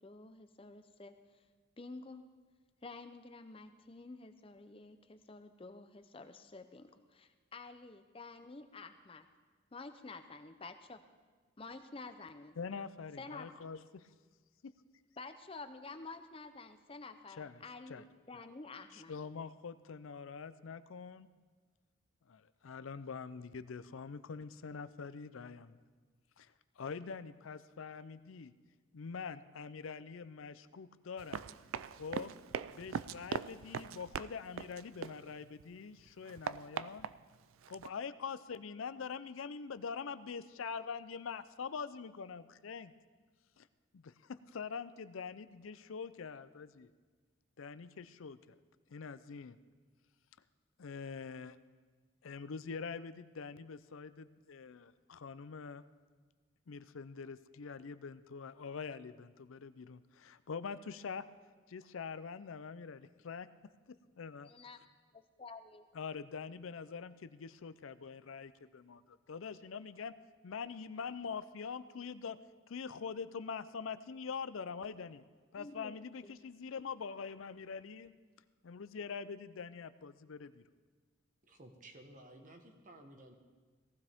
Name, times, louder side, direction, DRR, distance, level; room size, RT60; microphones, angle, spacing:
voice 1, 0.0-1.4 1.8-2.2 2.8-9.2 9.7-11.0 11.6-12.5 13.2-13.5 15.2-19.1 64.5-64.8 65.1-65.9 75.5-75.9 76.2-76.3, left 3 dB, 25° left, 8 dB, 0.6 m, -50 dB
voice 2, 12.6-14.1 14.6-14.7 17.4-18.0 18.9-21.3 22.3-25.8 26.4-28.5 28.9-31.4 31.9-32.3 32.7-37.1 37.7-42.9 43.6-43.7 43.9-46.9 47.6-48.5 48.9-49.6 50.8-51.6 52.2-55.8 56.7-61.2 61.7-63.5 63.9-64.5 65.9-70.1 70.4-72.4 72.7-75.2 75.5-78.1 78.6-80.6, left 5 dB, 80° left, 13 dB, 0.5 m, -44 dB
Run, 31.2-35.6 36.0-37.9, right 7 dB, 85° right, 0.4 m, -42 dB
voice 3, 81.4-83.3, right 1 dB, 40° right, 4 dB, 1.3 m, -55 dB
18.0 x 15.0 x 3.6 m, 1.5 s
head